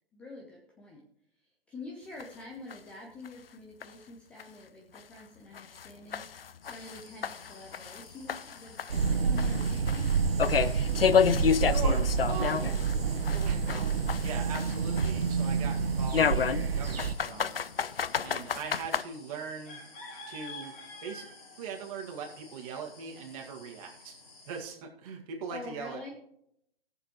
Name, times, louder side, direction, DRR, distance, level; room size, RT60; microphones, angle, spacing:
voice 1, 0.1-1.0 1.7-6.2 6.7-8.8 9.1-10.1 25.5-26.1, left 2 dB, 5° left, -2 dB, 0.3 m, -46 dB
sound 1, 2.2-2.3 2.7-2.8 3.2-3.3 3.8-3.9 4.4-4.5 4.9-5.0 5.5-8.0 8.3-12.9 13.2-15.3 16.1-19.0, left 7 dB, 75° left, 0.6 m, -29 dB
sound 2, 6.6-24.7, left 2 dB, 30° left, 3.5 m, -52 dB
sound 3, 8.9-17.1, right 5 dB, 75° right, 0.7 m, -28 dB
voice 2, 11.7-12.8 13.4-13.9 14.2-17.6 18.2-19.8 20.3-20.7 21.0-21.3 21.6-24.1 24.5-26.1, right 5 dB, 35° right, 1 dB, 2.0 m, -40 dB
19.0 x 6.9 x 3.1 m, 0.73 s
figure-of-eight pair, 115°, 30 cm